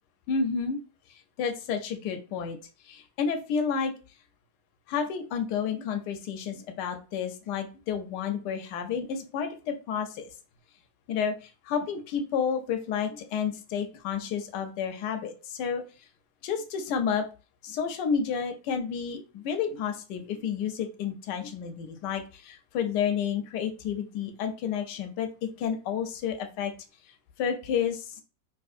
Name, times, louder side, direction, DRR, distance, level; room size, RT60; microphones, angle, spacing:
voice 1, 0.3-0.8 1.1-2.6 2.8-3.9 4.9-10.3 11.1-15.8 16.4-17.3 17.6-26.7 27.4-28.2, left 7 dB, 70° left, 6 dB, 1.1 m, -30 dB
3.6 x 2.9 x 2.4 m, 0.34 s
omnidirectional pair, 2.0 m